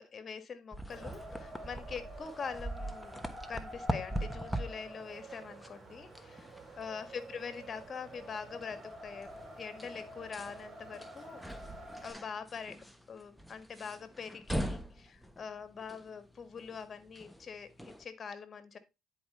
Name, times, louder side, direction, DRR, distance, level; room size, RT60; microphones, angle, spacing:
voice 1, 0.0-3.2 3.5-6.5 6.8-9.3 9.6-11.4 12.0-18.8, left 6 dB, 40° left, 11 dB, 1.7 m, -44 dB
sound 1, 0.7-18.0, equal, ahead, 1.2 m, -42 dB
Wind, 0.9-12.1, right 1 dB, 40° right, 4.5 m, -49 dB
10.0 x 5.0 x 4.3 m, 0.25 s
supercardioid pair, 75°, 0 cm